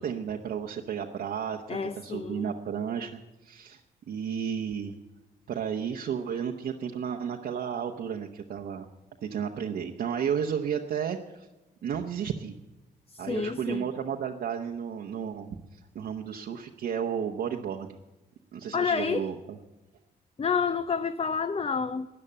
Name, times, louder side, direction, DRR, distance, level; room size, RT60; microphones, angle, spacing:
voice 1, 0.0-3.8 4.1-4.9 5.5-8.9 9.2-11.5 11.8-12.6 13.2-18.0 18.5-19.6, right 8 dB, 75° right, 0 dB, 1.0 m, -33 dB
voice 2, 1.7-2.5 13.1-13.8 18.7-19.3 20.4-22.1, left 5 dB, 35° left, 10 dB, 0.6 m, -29 dB
13.5 x 9.7 x 8.8 m, 1.0 s
cardioid pair, 65°, 17 cm